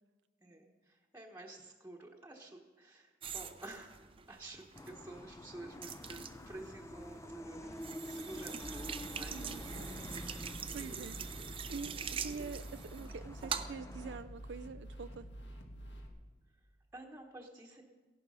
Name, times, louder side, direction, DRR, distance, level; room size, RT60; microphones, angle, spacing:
voice 1, 0.4-9.3 16.9-17.8, right 1 dB, 10° right, -2 dB, 1.1 m, -51 dB
sound 1, 3.2-13.8, right 7 dB, 30° right, 0.5 m, -44 dB
sound 2, 4.7-14.2, left 1 dB, 15° left, 0.6 m, -49 dB
sound 3, 8.6-16.1, equal, 85° left, 1.8 m, -48 dB
voice 2, 9.1-11.2 11.7-15.3, right 4 dB, 85° right, 11 dB, 0.5 m, -46 dB
15.5 x 11.5 x 5.5 m, 1.3 s
head